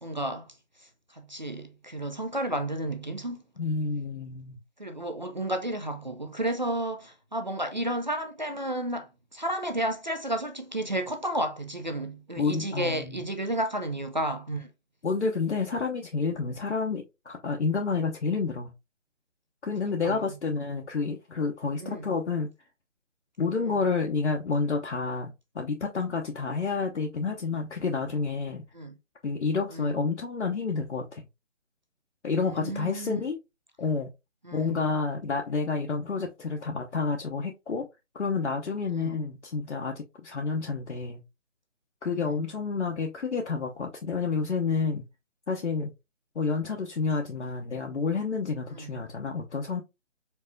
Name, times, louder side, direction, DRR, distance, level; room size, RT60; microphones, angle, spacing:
voice 1, 0.0-0.5 0.8-3.5 4.8-14.7 19.8-20.4 21.8-22.1 23.6-23.8 28.7-28.9 29.7-30.0 32.5-33.2 34.4-34.8 38.9-39.1 42.2-42.4 48.7-49.0, right 1 dB, 35° right, 0.5 m, -32 dB
voice 2, 3.6-4.6 12.4-13.2 15.0-18.7 19.6-22.5 23.4-28.6 29.2-31.2 32.2-33.4 33.8-34.1 34.5-37.9 38.1-41.2 42.0-45.1 45.5-45.9 46.3-49.8, left 4 dB, 60° left, 0.9 m, -29 dB
4.5 x 4.1 x 2.6 m
figure-of-eight pair, 170°, 38 cm